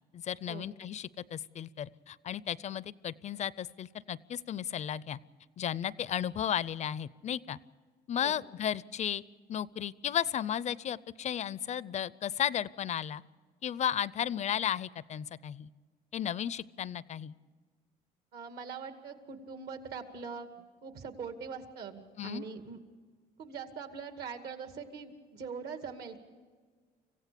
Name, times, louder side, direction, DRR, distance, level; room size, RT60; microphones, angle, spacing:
voice 1, 0.1-5.2 5.6-7.6 8.1-9.2 9.5-13.2 13.6-15.7 16.1-17.3 22.2-22.5, left 9 dB, 45° left, 20 dB, 0.5 m, -34 dB
voice 2, 18.3-20.5 20.8-22.8 23.4-26.2, right 5 dB, 70° right, 7 dB, 2.2 m, -42 dB
26.0 x 15.5 x 6.8 m, 1.5 s
cardioid pair, 110°, 17 cm